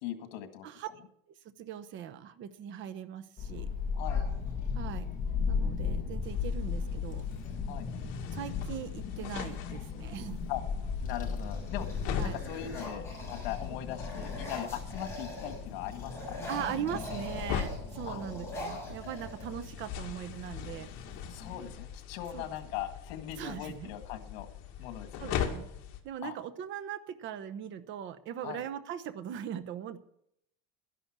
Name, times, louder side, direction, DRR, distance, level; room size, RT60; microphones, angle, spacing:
voice 1, 0.0-0.7 3.9-4.2 7.7-7.9 10.5-10.6 11.0-11.9 12.2-16.4 18.1-18.2 21.3-24.5 24.8-25.5 26.2-26.4 28.4-28.6, left 11 dB, 85° left, 8 dB, 1.9 m, -40 dB
voice 2, 1.6-3.7 4.7-5.1 5.5-7.2 8.3-10.5 12.2-12.4 16.5-20.9 22.3-22.4 23.4-23.9 25.2-25.7 26.0-30.0, right 9 dB, 40° right, 11 dB, 1.0 m, -40 dB
Child speech kid speaking / Wind, 3.4-21.7, left 5 dB, 25° left, 1.9 m, -37 dB
sound 1, 4.0-5.0 6.7-6.8 7.1-7.6 8.2-9.7 10.3-10.7 11.1-15.6 15.9-19.8, equal, 10° left, 6.5 m, -44 dB
sound 2, 6.2-26.0, left 9 dB, 60° left, 2.2 m, -42 dB
12.5 x 11.0 x 6.1 m, 0.73 s
cardioid pair, 165°, 30 cm